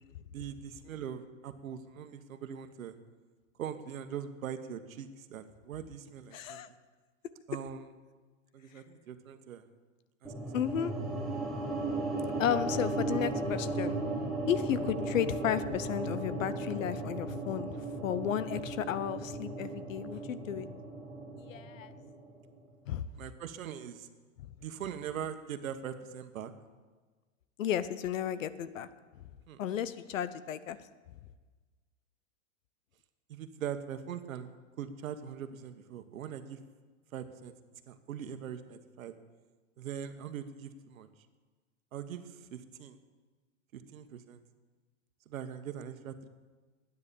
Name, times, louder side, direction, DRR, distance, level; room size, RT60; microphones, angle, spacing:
voice 1, 0.3-3.0 3.6-6.6 7.5-7.8 8.5-9.6 10.2-10.3 23.2-24.1 24.6-26.5 29.5-29.6 33.3-34.5 34.8-36.6 37.1-37.5 37.9-39.1 39.8-41.1 41.9-43.0 43.7-44.4 45.3-46.3, right 8 dB, 85° right, 9 dB, 1.3 m, -41 dB
voice 2, 6.3-6.7 10.5-10.9 12.4-14.0 14.5-20.7 21.4-21.9 22.9-23.0 24.4-24.5 27.6-28.9 29.6-30.8, left 10 dB, 70° left, 15 dB, 0.9 m, -33 dB
sound 1, 10.2-22.5, right 2 dB, ahead, 0.4 m, -36 dB
12.5 x 9.6 x 7.0 m, 1.4 s
supercardioid pair, 170°, 40 cm